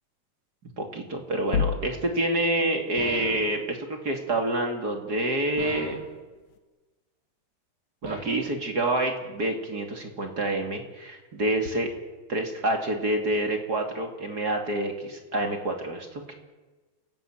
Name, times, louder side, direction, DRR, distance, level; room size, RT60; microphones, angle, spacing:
voice 1, 0.8-3.8 4.0-6.0 8.0-11.9 12.3-16.3, right 1 dB, 30° right, 3 dB, 2.6 m, -27 dB
sound 1, 1.5-2.5, left 7 dB, 55° left, 2.1 m, -28 dB
sound 2, 3.0-3.6 5.6-6.1 8.0-8.5, right 2 dB, 75° right, 8.5 m, -37 dB
29.5 x 17.5 x 8.9 m, 1.3 s
omnidirectional pair, 4.7 m